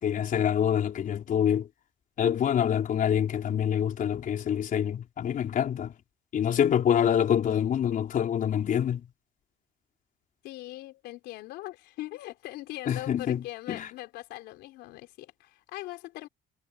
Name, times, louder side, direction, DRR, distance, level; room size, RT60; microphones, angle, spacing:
voice 1, 0.0-1.7 2.2-5.9 6.3-9.1 12.9-13.9, left 9 dB, 55° left, 4.5 m, -26 dB
voice 2, 10.4-16.3, left 17 dB, 90° left, 3.9 m, -41 dB
cardioid pair, 110°, 17 cm